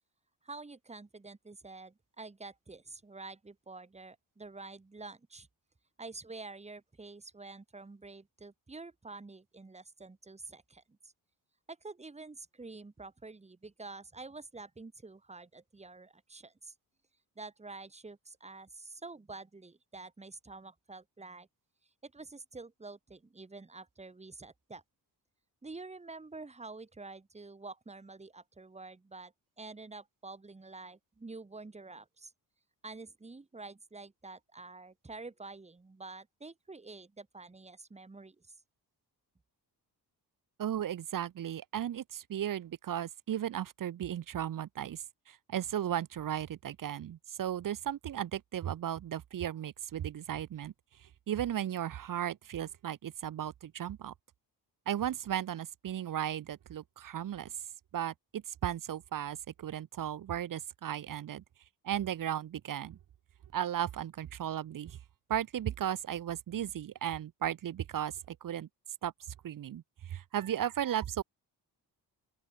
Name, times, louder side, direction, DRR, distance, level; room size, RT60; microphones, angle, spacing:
voice 1, 0.4-5.5 6.0-11.1 11.7-16.7 17.4-21.5 22.0-24.8 25.6-32.3 32.8-38.6, right 3 dB, 15° right, 1.8 m, -48 dB
voice 2, 40.6-50.7 51.3-54.1 54.9-57.5 57.9-61.4 61.8-63.0 63.5-65.0 65.3-68.7 69.0-69.1 69.4-69.8 70.1-71.2, right 10 dB, 55° right, 0.8 m, -35 dB
open air
wide cardioid pair, 135°, 41 cm